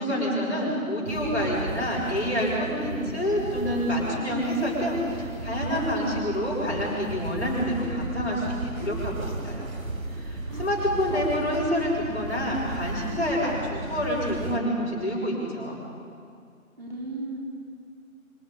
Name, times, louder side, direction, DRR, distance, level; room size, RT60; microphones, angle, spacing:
voice 1, 0.0-9.7 10.2-15.8, equal, 50° left, -4 dB, 7.2 m, -27 dB
sound 1, 1.0-14.6, right 3 dB, 75° right, 1.7 m, -35 dB
voice 2, 10.5-11.3 16.8-17.4, right 2 dB, 45° right, -3 dB, 4.3 m, -36 dB
26.5 x 25.5 x 4.1 m, 2.3 s
figure-of-eight pair, 180°, 42 cm